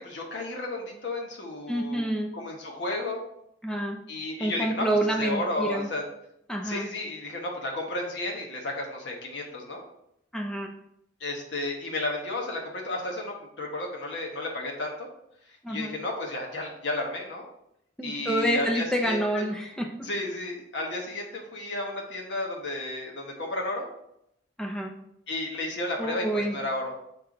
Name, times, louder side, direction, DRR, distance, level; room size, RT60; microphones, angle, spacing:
voice 1, 0.0-2.0 2.3-3.2 4.1-4.9 5.2-6.0 6.6-9.8 11.2-15.1 15.7-17.4 18.0-19.4 20.0-23.9 25.3-26.9, left 2 dB, 75° left, 0 dB, 1.2 m, -33 dB
voice 2, 1.7-2.3 3.6-4.0 4.4-5.9 6.5-6.9 10.3-10.7 15.6-15.9 18.0-19.9 24.6-24.9 26.0-26.5, right 1 dB, 5° left, 2 dB, 0.5 m, -28 dB
6.9 x 4.5 x 3.8 m, 0.77 s
head